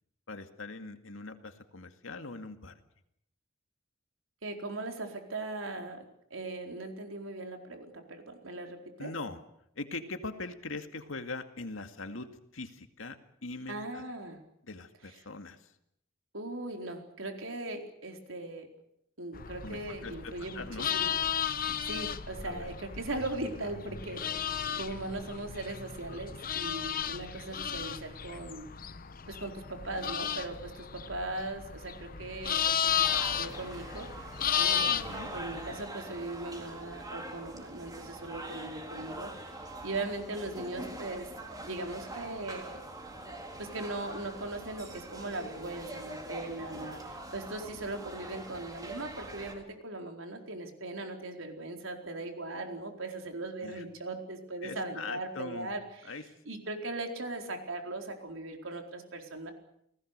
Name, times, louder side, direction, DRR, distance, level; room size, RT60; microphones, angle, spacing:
voice 1, 0.3-2.8 9.0-9.4 9.8-14.0 14.6-15.7 19.6-20.9 21.7-21.9 22.4-22.7 34.9-35.3 53.6-53.8 54.6-55.7 56.0-56.2, left 3 dB, 85° left, 7 dB, 2.2 m, -42 dB
voice 2, 4.4-6.0 6.3-9.1 13.7-14.4 16.3-18.7 19.2-21.2 21.8-28.7 29.3-39.6 39.8-41.3 41.6-42.8 43.6-56.2 56.5-59.5, right 2 dB, 85° right, 3 dB, 4.4 m, -39 dB
sound 1, 19.3-35.9, left 9 dB, 45° left, 0.9 m, -34 dB
sound 2, 33.0-49.5, right 1 dB, 20° right, 3.9 m, -44 dB
29.5 x 19.0 x 6.8 m, 0.75 s
head